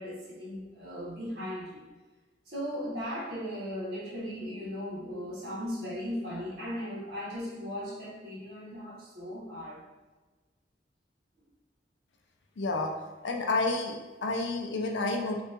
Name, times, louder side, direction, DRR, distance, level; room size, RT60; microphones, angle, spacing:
voice 1, 0.0-1.8 2.5-9.8, equal, 60° right, -6 dB, 1.0 m, -37 dB
voice 2, 12.6-12.9 13.2-15.4, left 3 dB, 85° left, 3 dB, 0.5 m, -30 dB
2.8 x 2.3 x 3.4 m, 1.2 s
head